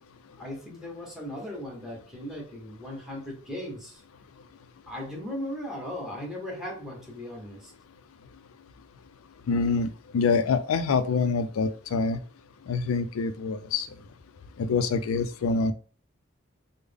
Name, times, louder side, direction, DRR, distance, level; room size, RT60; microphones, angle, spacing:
voice 1, 0.4-4.0 4.9-7.7, left 1 dB, ahead, -2 dB, 1.0 m, -37 dB
voice 2, 9.5-12.2 12.7-13.9 14.6-15.7, left 4 dB, 90° left, 10 dB, 0.4 m, -26 dB
3.4 x 2.0 x 3.4 m, 0.39 s
head